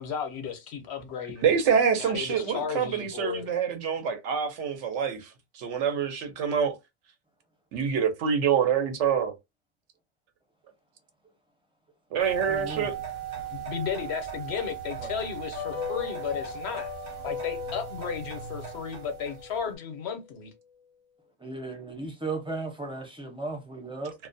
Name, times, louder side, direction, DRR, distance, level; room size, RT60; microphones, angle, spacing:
voice 1, 0.0-1.5 2.0-3.5 13.5-16.9 17.2-20.5, left 7 dB, 70° left, 0.9 m, -34 dB
voice 2, 1.4-6.8 7.7-9.3 12.1-12.9, right 7 dB, 80° right, 1.0 m, -26 dB
sound 1, 12.2-19.7, right 9 dB, 55° right, 1.1 m, -38 dB
voice 3, 12.5-12.9 15.0-15.1 21.4-24.1, right 3 dB, 5° right, 0.5 m, -35 dB
sound 2, 15.5-19.8 20.1-20.2, left 7 dB, 45° left, 0.5 m, -38 dB
2.4 x 2.1 x 2.5 m
omnidirectional pair, 1.2 m